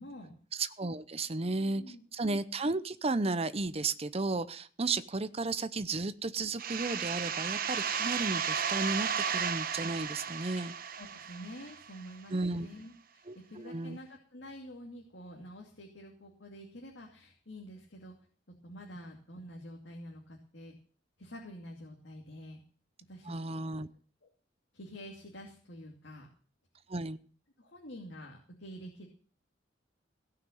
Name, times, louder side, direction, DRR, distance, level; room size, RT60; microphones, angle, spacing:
voice 1, 0.0-0.4 1.4-2.0 11.0-18.1 18.6-20.7 21.2-22.6 23.1-23.8 24.2-24.3 24.7-26.3 27.6-29.1, equal, 65° left, 0 dB, 2.5 m, -48 dB
voice 2, 0.5-1.8 2.1-10.7 12.3-12.7 13.3-14.0 23.3-23.9 26.9-27.2, right 3 dB, 35° right, 12 dB, 0.7 m, -34 dB
sound 1, 6.6-12.1, right 7 dB, 50° right, 1.1 m, -34 dB
17.5 x 5.9 x 9.2 m, 0.44 s
head